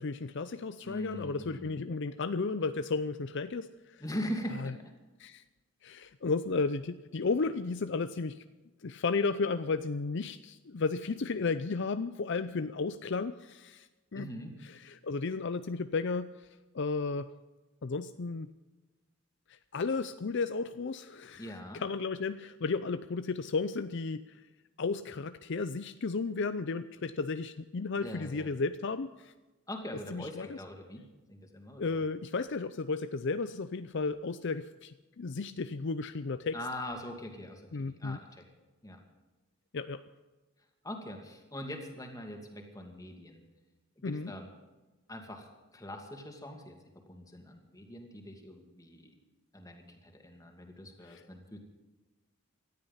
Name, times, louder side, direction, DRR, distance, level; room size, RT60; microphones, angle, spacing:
voice 1, 0.0-4.0 4.6-4.7 5.2-5.4 5.8-8.4 8.8-14.3 14.6-16.5 16.7-17.3 17.8-18.5 19.5-24.2 24.8-29.3 30.1-30.6 31.8-36.6 37.7-38.2 39.7-40.0 44.0-44.3 51.0-51.2, left 4 dB, 60° left, 11 dB, 0.5 m, -33 dB
voice 2, 0.8-1.8 4.0-4.8 14.1-14.5 21.4-21.8 28.0-28.6 29.7-31.0 31.3-32.0 36.5-38.4 38.8-39.0 40.8-43.4 44.0-44.5 45.1-45.5 45.7-46.7 47.1-49.1 49.5-51.6, equal, 15° left, 3 dB, 2.6 m, -42 dB
18.5 x 13.5 x 5.6 m, 1.2 s
head